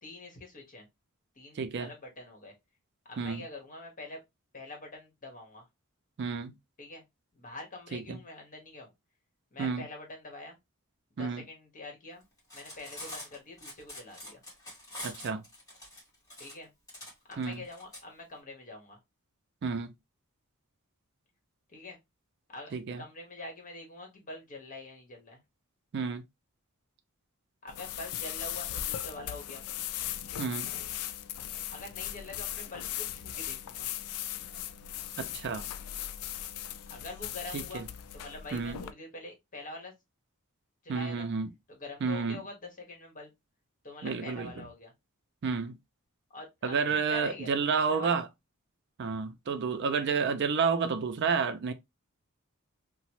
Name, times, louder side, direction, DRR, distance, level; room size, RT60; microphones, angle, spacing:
voice 1, 0.0-0.9 1.4-2.5 3.1-4.2 4.5-5.7 6.8-7.0 7.3-8.9 9.5-10.6 11.2-12.2 12.5-14.4 16.4-16.7 17.3-19.0 21.7-22.0 22.5-22.7 23.0-25.4 27.6-29.6 31.7-33.9 36.9-37.8 38.1-39.9 40.8-41.3 41.7-43.3 43.8-44.9 46.3-48.2, left 2 dB, 40° left, 1.1 m, -45 dB
voice 2, 1.6-1.9 3.2-3.4 6.2-6.5 7.9-8.2 9.6-9.8 11.2-11.4 15.0-15.4 17.4-17.6 19.6-19.9 22.7-23.0 25.9-26.2 30.4-30.7 35.2-35.7 37.5-37.8 38.5-38.8 40.9-41.5 42.0-42.4 44.0-44.5 45.4-45.8 46.6-48.3 49.0-51.7, right 5 dB, 55° right, 0.4 m, -30 dB
Cutlery silverware, 12.4-18.0, left 1 dB, 15° left, 1.3 m, -45 dB
sound 1, 27.7-38.9, left 11 dB, 85° left, 0.3 m, -38 dB
2.9 x 2.0 x 2.9 m
head